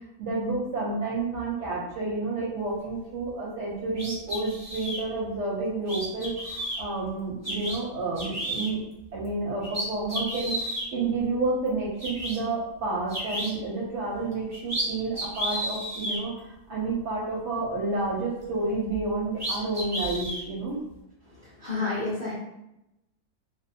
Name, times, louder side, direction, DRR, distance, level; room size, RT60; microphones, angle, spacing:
voice 1, 0.2-8.8 9.1-10.6 10.9-16.3 16.7-20.8, right 3 dB, 65° right, -5 dB, 0.7 m, -30 dB
sound 1, 3.9-5.0 5.9-6.8 7.4-7.8 8.2-8.7 9.2-9.3 9.6-10.9 11.7-11.8 12.0-12.4 13.1-13.5 14.3-14.9 15.1-16.2 18.9-19.0 19.4-20.4, right 1 dB, 20° right, 0.4 m, -32 dB
voice 2, 21.2-22.3, left 3 dB, 60° left, -9 dB, 0.5 m, -31 dB
2.6 x 2.0 x 2.6 m, 0.88 s
omnidirectional pair, 1.6 m